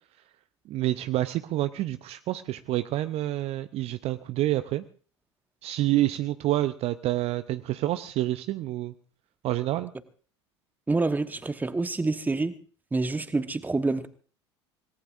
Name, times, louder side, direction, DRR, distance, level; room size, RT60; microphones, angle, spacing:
voice 1, 0.7-4.8 5.6-8.9 9.4-9.9, right 15 dB, 45° right, 0.6 m, -28 dB
voice 2, 10.9-12.6 12.9-14.1, right 3 dB, 10° right, 1.1 m, -27 dB
25.5 x 18.5 x 2.5 m
figure-of-eight pair, 70°, 15 cm